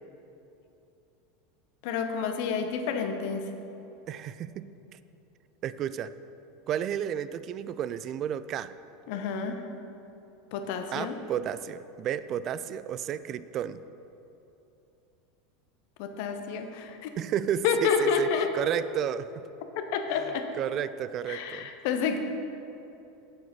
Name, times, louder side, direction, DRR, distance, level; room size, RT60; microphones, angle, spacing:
voice 1, 1.8-3.5 9.1-9.6 10.5-11.1 16.0-17.1 17.6-18.5 19.8-20.5 21.3-22.2, left 6 dB, 55° left, 6 dB, 0.9 m, -29 dB
voice 2, 4.1-4.7 5.6-6.1 6.7-8.7 10.9-13.8 17.2-19.4 20.5-21.7, right 9 dB, 40° right, 15 dB, 0.3 m, -32 dB
9.0 x 7.0 x 5.5 m, 2.9 s
figure-of-eight pair, 80°, 0 cm